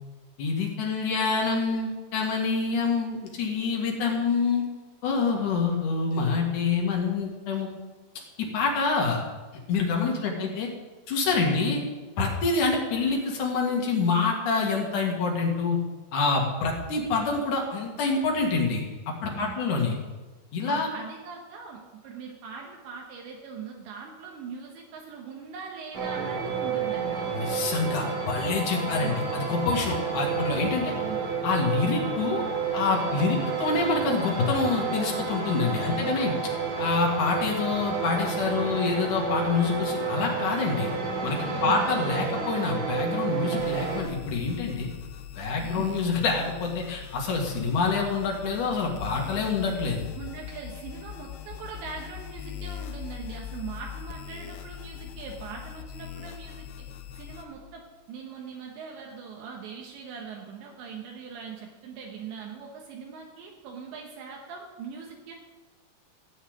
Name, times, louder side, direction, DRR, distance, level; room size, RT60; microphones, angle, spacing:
voice 1, 0.4-4.6 5.0-7.7 8.4-9.2 9.7-10.7 11.1-11.8 12.2-15.8 16.1-20.0 20.5-20.9 27.3-30.9 31.4-32.4 32.7-36.3 36.8-40.9 41.2-44.9 45.4-50.1, left 4 dB, 55° left, 0 dB, 2.6 m, -26 dB
voice 2, 10.1-10.6 11.4-11.6 19.2-19.6 20.6-27.3 28.8-29.2 30.9-31.3 35.9-36.5 41.4-41.9 45.6-46.0 50.1-56.9 57.2-65.3, right 6 dB, 75° right, 0 dB, 3.4 m, -41 dB
sound 1, 25.9-44.0, right 5 dB, 45° right, 3.1 m, -30 dB
sound 2, 43.6-57.4, left 11 dB, 85° left, 2.0 m, -41 dB
14.5 x 5.7 x 8.8 m, 1.2 s
omnidirectional pair, 5.4 m